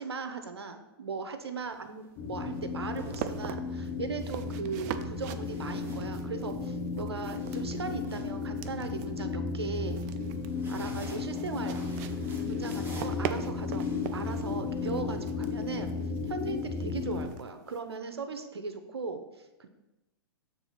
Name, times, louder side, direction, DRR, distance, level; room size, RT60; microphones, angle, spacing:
voice 1, 0.0-10.0 10.7-11.8 12.4-13.8 14.1-15.9 16.2-19.7, right 4 dB, 80° right, 8 dB, 0.8 m, -38 dB
sound 1, 1.6-1.8 2.7-3.9 5.4-6.6 7.0-9.1 10.2-15.9, right 1 dB, 15° right, 1.3 m, -51 dB
sound 2, 1.6-17.9, right 10 dB, 40° right, 0.4 m, -43 dB
sound 3, 2.2-17.3, left 4 dB, 30° left, 1.2 m, -34 dB
7.0 x 3.4 x 5.7 m, 1.0 s
figure-of-eight pair, 110°, 13 cm